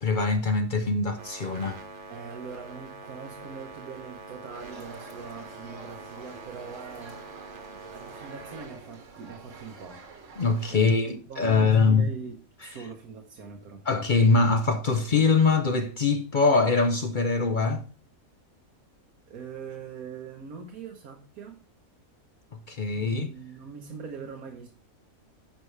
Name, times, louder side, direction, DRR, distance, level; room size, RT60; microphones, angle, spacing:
voice 1, 0.0-1.8 10.4-12.1 13.9-17.9 22.5-23.3, left 4 dB, 50° left, 0.6 m, -23 dB
sound 1, 1.2-8.7, right 3 dB, 40° right, 1.1 m, -44 dB
voice 2, 2.1-7.2 7.7-10.0 10.7-13.9 19.3-21.6 22.9-24.7, right 5 dB, 90° right, 1.5 m, -42 dB
sound 2, 4.5-10.8, right 4 dB, 60° right, 1.4 m, -48 dB
10.0 x 5.6 x 3.2 m
omnidirectional pair, 1.5 m